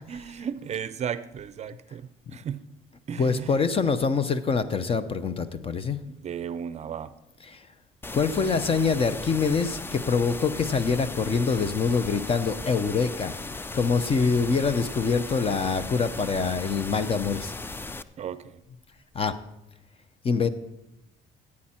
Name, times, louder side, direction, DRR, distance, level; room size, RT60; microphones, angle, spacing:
voice 1, 0.1-2.6 3.1-3.5 6.0-7.1 18.2-18.5, right 8 dB, 40° right, 0.5 m, -35 dB
voice 2, 3.1-6.0 7.4-7.6 8.1-13.4 13.7-17.5 19.1-19.4 20.2-20.5, left 5 dB, 35° left, 0.7 m, -25 dB
sound 1, 8.0-18.0, left 3 dB, 15° left, 0.4 m, -37 dB
14.5 x 8.6 x 4.4 m
cardioid pair, 110°, 17 cm